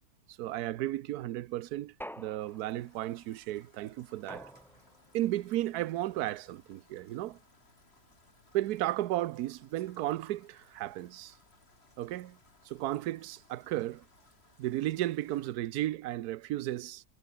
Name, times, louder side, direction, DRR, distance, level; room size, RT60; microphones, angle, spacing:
voice 1, 0.4-4.5 5.1-7.4 8.5-11.3 12.0-12.4 12.7-14.0 14.6-17.0, right 14 dB, 70° right, 1.1 m, -34 dB
sound 1, 2.0-3.0 4.3-5.1, equal, ahead, 1.1 m, -47 dB
Rain, 2.4-15.5, left 2 dB, 35° left, 3.8 m, -64 dB
omnidirectional pair, 1.8 m